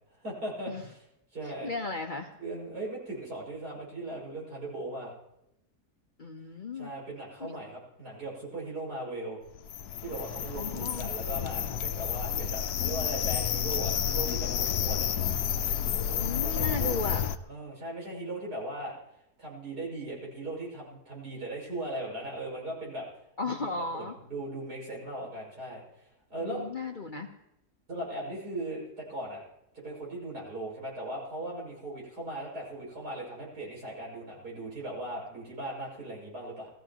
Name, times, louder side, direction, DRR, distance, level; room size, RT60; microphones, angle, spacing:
voice 1, 0.2-1.0 1.3-1.7 2.4-5.1 6.7-9.4 10.0-15.1 16.1-17.0 17.5-19.0 19.4-23.0 23.4-26.7 27.9-29.4 29.7-36.7, right 1 dB, 80° right, -4 dB, 6.6 m, -38 dB
voice 2, 1.4-2.3 6.2-6.9 7.4-7.5 10.5-11.1 16.2-17.2 23.4-24.1 26.4-27.3, left 3 dB, 40° left, 3 dB, 0.8 m, -35 dB
sound 1, 9.6-17.4, left 9 dB, 80° left, 1.2 m, -30 dB
21.0 x 14.5 x 3.0 m, 0.85 s
omnidirectional pair, 1.7 m